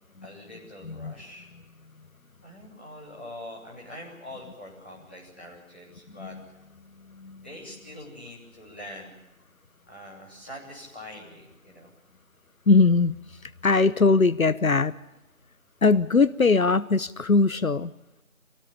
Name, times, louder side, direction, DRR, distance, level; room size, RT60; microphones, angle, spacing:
voice 1, 0.2-1.5 2.4-6.6 7.3-9.1 9.9-11.9, left 1 dB, 10° left, -10 dB, 3.4 m, -44 dB
voice 2, 7.1-7.4 12.7-14.9 15.8-17.9, left 4 dB, 75° left, 17 dB, 0.9 m, -21 dB
26.0 x 18.5 x 8.6 m, 1.0 s
figure-of-eight pair, 175°, 42 cm